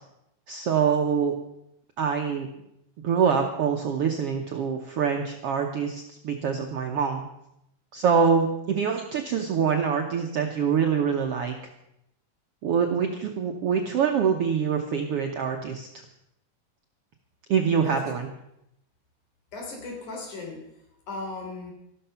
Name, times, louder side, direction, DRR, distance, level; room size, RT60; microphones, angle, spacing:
voice 1, 0.5-1.3 2.0-2.5 3.0-7.2 7.9-11.6 12.6-15.9 17.5-18.3, right 6 dB, 65° right, 3 dB, 1.5 m, -25 dB
voice 2, 17.8-18.2 19.5-20.6 21.1-21.7, left 3 dB, 65° left, 1 dB, 4.8 m, -36 dB
13.5 x 12.5 x 5.7 m, 0.81 s
omnidirectional pair, 3.9 m